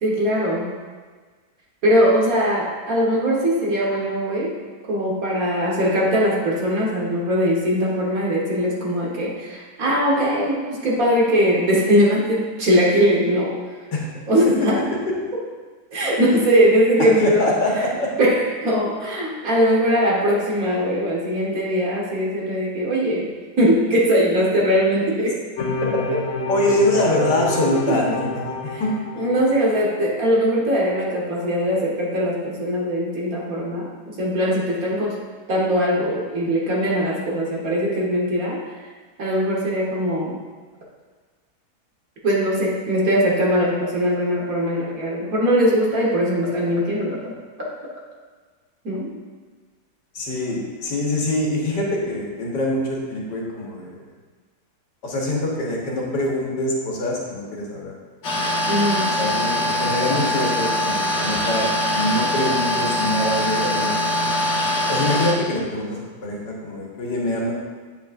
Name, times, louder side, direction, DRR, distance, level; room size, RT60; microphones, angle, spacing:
voice 1, 0.0-0.8 1.8-4.5 4.9-13.6 14.3-14.8 15.9-17.9 18.2-23.3 23.6-25.4 26.1-26.2 27.9-28.3 28.6-28.8 29.2-35.2 35.5-38.6 39.2-40.4 42.2-47.3 48.8-49.1 58.7-59.1, equal, 55° right, -3 dB, 1.8 m, -20 dB
voice 2, 17.2-18.1 25.9-26.0 26.5-28.9 50.1-53.9 55.0-57.9 59.2-59.5 59.8-61.7 61.9-64.4 64.9-67.5, left 1 dB, 85° left, -2 dB, 2.0 m, -24 dB
sound 1, 25.6-30.2, left 2 dB, 65° left, 0.8 m, -29 dB
sound 2, 58.2-65.3, left 1 dB, 45° left, 1.3 m, -22 dB
8.3 x 8.2 x 2.6 m, 1.4 s
omnidirectional pair, 1.8 m